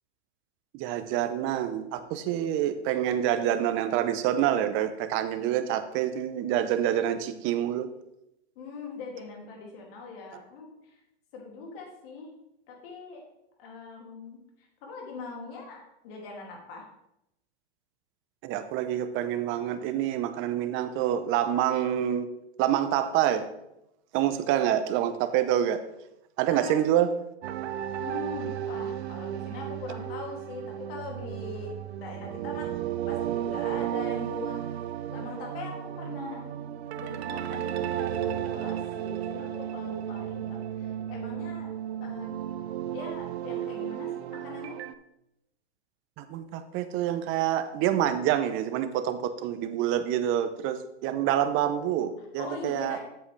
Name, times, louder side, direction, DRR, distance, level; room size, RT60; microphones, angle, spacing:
voice 1, 0.7-7.9 18.4-22.3 22.6-23.5 24.1-25.8 26.4-27.1 46.2-53.0, right 11 dB, 35° right, 10 dB, 0.8 m, -27 dB
voice 2, 8.6-11.0 11.3-12.3 12.7-13.3 13.6-14.4 14.8-16.9 26.5-26.8 28.0-32.7 33.1-34.8 35.1-36.5 37.0-41.7 42.0-42.3 42.8-44.8 52.2-53.0, left 3 dB, 55° left, 0 dB, 2.6 m, -41 dB
sound 1, 27.4-44.9, right 11 dB, 70° right, 0.6 m, -34 dB
7.9 x 7.5 x 3.3 m, 0.84 s
hypercardioid pair, 115°, 34 cm